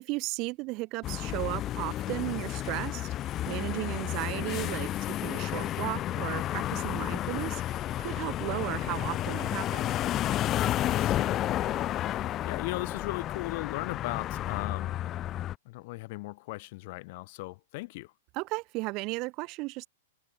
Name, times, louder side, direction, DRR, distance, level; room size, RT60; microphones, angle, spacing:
voice 1, 0.0-9.9 18.3-19.9, right 24 dB, 35° right, 4.7 m, -35 dB
sound 1, 1.0-15.5, left 13 dB, 25° left, 1.8 m, -31 dB
voice 2, 10.8-11.8 12.1-14.9 15.6-18.1, left 23 dB, 45° left, 3.2 m, -38 dB
hypercardioid pair, 150°, 0 cm